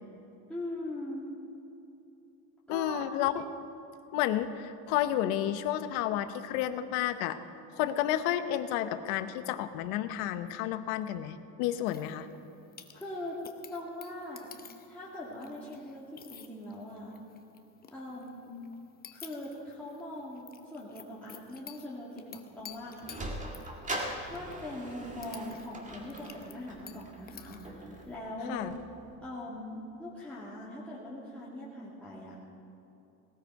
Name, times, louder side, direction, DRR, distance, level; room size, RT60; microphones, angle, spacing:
voice 1, 0.5-1.2 2.7-3.0 12.9-13.4 13.7-14.5 14.9-17.1 17.9-18.5 19.1-23.3 24.2-28.6 29.2-32.4, left 1 dB, 5° left, -8 dB, 2.3 m, -41 dB
voice 2, 2.7-3.5 4.1-7.4 7.8-12.3 28.5-28.7, left 12 dB, 70° left, 11 dB, 1.0 m, -31 dB
sound 1, 11.9-28.2, left 7 dB, 20° left, 0.9 m, -53 dB
Sliding door, 22.6-29.2, right 1 dB, 20° right, 1.9 m, -42 dB
18.0 x 13.5 x 4.7 m, 2.9 s
supercardioid pair, 130°, 41 cm